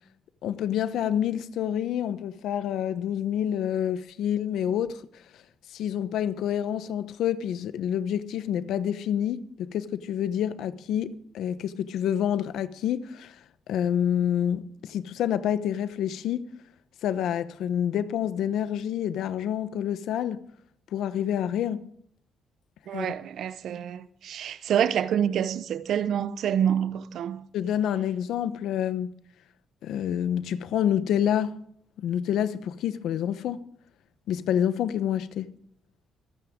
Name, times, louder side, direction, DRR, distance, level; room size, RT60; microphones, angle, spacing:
voice 1, 0.4-5.0 5.7-13.4 13.7-16.5 17.0-20.4 20.9-21.9 22.9-23.1 27.5-29.1 29.8-31.6 32.0-33.7 34.3-35.5, left 9 dB, 80° left, 0.9 m, -28 dB
voice 2, 22.9-27.4, right 9 dB, 70° right, 0.8 m, -27 dB
25.5 x 9.3 x 3.7 m
cardioid pair, 90°, 0 cm